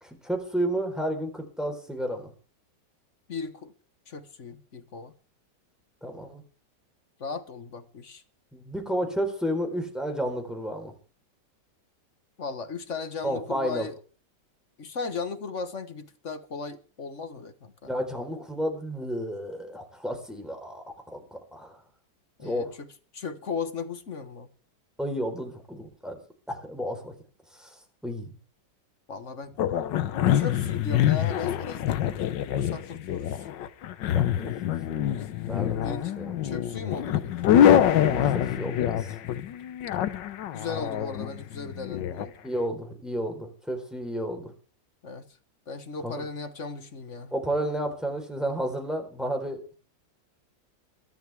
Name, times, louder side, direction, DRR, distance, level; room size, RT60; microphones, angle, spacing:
voice 1, 0.0-2.3 6.0-6.4 8.5-10.9 13.2-13.9 17.8-21.8 22.4-22.7 25.0-26.2 26.5-27.1 27.6-27.7 28.0-28.3 34.1-34.5 34.9-35.8 36.2-36.4 38.0-39.1 42.4-44.5 46.0-46.2 47.3-49.7, equal, ahead, 4.0 m, -32 dB
voice 2, 3.3-3.7 4.1-5.1 7.2-8.2 12.4-14.0 14.8-17.9 22.4-24.5 29.1-29.6 30.3-32.0 32.5-33.5 35.8-37.5 40.5-42.4 45.0-45.4 45.7-47.3, left 4 dB, 45° left, 1.5 m, -37 dB
sound 1, 29.6-42.3, left 10 dB, 85° left, 1.6 m, -25 dB
23.5 x 11.5 x 3.5 m
omnidirectional pair, 1.9 m